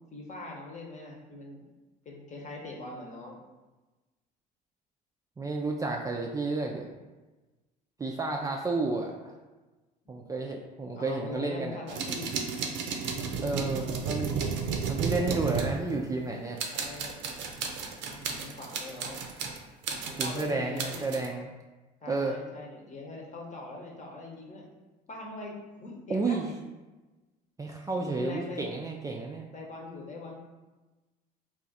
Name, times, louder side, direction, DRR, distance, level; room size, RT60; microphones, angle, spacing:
voice 1, 0.1-1.7 2.0-3.4 10.9-12.4 16.7-17.2 18.1-19.2 20.0-21.0 22.0-24.7 25.1-26.6 27.9-28.7 29.5-30.4, left 2 dB, 35° left, -1 dB, 0.9 m, -42 dB
voice 2, 5.4-6.9 8.0-9.3 10.1-11.8 13.4-14.3 14.9-16.6 20.2-21.5 22.1-22.4 26.1-26.5 27.6-29.5, right 3 dB, 15° right, 0 dB, 0.3 m, -31 dB
sound 1, 11.9-16.3 16.6-19.6 19.8-21.3, right 5 dB, 65° right, 0.6 m, -33 dB
2.4 x 2.3 x 4.0 m, 1.2 s
hypercardioid pair, 65°, 21 cm